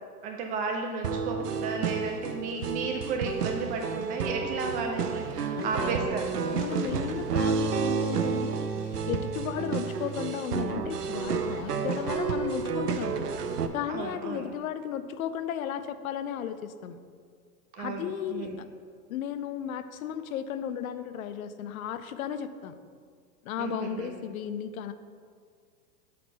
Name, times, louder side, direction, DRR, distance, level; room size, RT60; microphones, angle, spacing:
voice 1, 0.2-6.4 13.9-14.5 17.7-18.6 23.6-24.1, right 4 dB, 20° right, 3 dB, 0.3 m, -33 dB
sound 1, 1.0-13.7, right 6 dB, 90° right, 0.7 m, -30 dB
voice 2, 5.6-6.0 6.5-8.7 9.1-13.2 13.7-17.0 17.8-18.6 19.1-22.8 23.4-24.9, left 9 dB, 65° left, 11 dB, 0.6 m, -34 dB
7.4 x 4.3 x 5.5 m, 2.1 s
hypercardioid pair, 100°, 46 cm